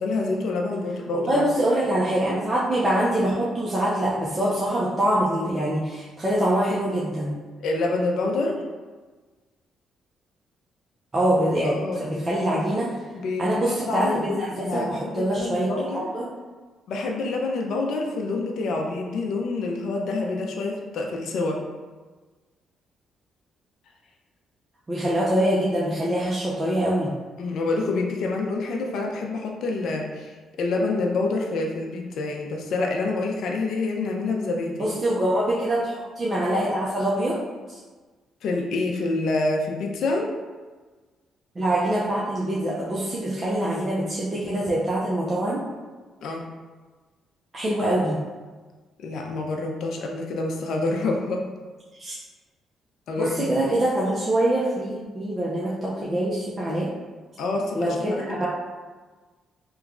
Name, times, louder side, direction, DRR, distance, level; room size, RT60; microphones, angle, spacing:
voice 1, 0.0-1.4 7.6-8.6 11.6-12.3 13.1-16.1 16.9-21.6 27.4-34.9 38.4-40.3 46.2-46.4 49.0-51.5 53.1-53.5 57.4-58.5, left 3 dB, 70° left, 1 dB, 0.4 m, -27 dB
voice 2, 1.1-7.3 11.1-13.0 13.4-16.3 24.9-27.1 34.8-37.4 37.7-37.8 41.6-45.6 47.5-48.2 52.0-52.2 53.2-56.9 57.7-58.5, right 1 dB, 30° right, -6 dB, 0.6 m, -24 dB
3.0 x 2.3 x 3.6 m, 1.3 s
cardioid pair, 90°, 0 cm